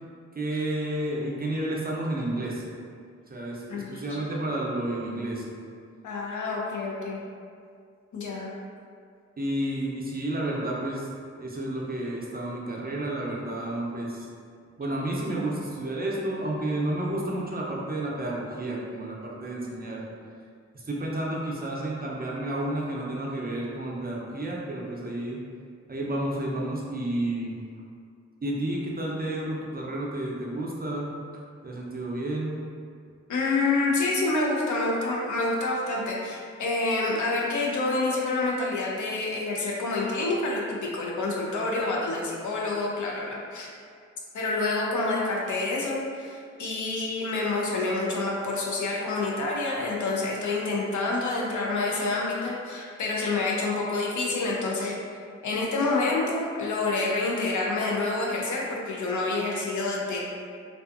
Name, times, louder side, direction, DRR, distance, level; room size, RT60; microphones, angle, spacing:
voice 1, 0.3-2.6 3.3-5.5 9.4-11.1 11.4-14.3 14.8-20.0 20.7-25.4 25.9-27.5 28.4-31.1 31.6-32.5, right 1 dB, 30° right, -3 dB, 0.5 m, -31 dB
voice 2, 3.7-4.2 6.0-7.2 8.1-8.5 33.3-43.7 44.3-55.0 55.4-60.3, left 3 dB, 85° left, -2 dB, 0.5 m, -28 dB
2.6 x 2.3 x 2.4 m, 2.2 s
cardioid pair, 70°, 29 cm